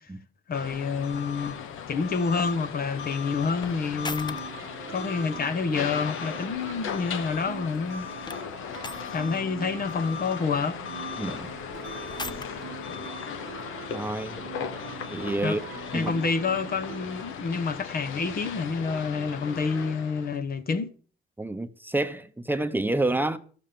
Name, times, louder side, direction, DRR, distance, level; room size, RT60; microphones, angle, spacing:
sound 1, 0.5-20.4, left 7 dB, 85° left, 1.2 m, -37 dB
voice 1, 0.5-1.6 1.9-4.4 4.9-8.1 9.1-10.8 15.4-15.6 15.9-21.0, left 5 dB, 50° left, 1.1 m, -28 dB
sound 2, 0.6-16.2, left 3 dB, 20° left, 0.8 m, -46 dB
sound 3, 3.6-17.3, right 17 dB, 90° right, 0.6 m, -44 dB
voice 2, 11.2-11.5 13.9-14.4 15.1-15.6 15.9-16.1 21.4-23.4, right 2 dB, 10° right, 0.9 m, -28 dB
12.5 x 7.3 x 6.8 m
cardioid pair, 90°, 20 cm